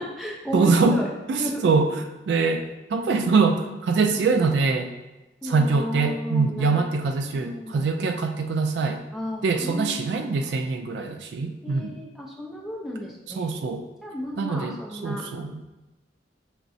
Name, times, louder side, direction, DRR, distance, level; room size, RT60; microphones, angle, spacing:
voice 1, 0.0-1.1 1.4-1.6 5.4-6.8 7.3-7.9 9.1-10.5 11.6-13.5 14.0-15.3, left 1 dB, ahead, -3 dB, 0.6 m, -34 dB
voice 2, 0.5-1.0 1.3-1.9 2.3-2.6 2.9-4.9 5.4-9.0 9.4-12.0 13.4-13.8 14.4-14.8 15.0-15.5, right 4 dB, 65° right, 6 dB, 0.3 m, -23 dB
5.7 x 3.0 x 2.7 m, 1.0 s
head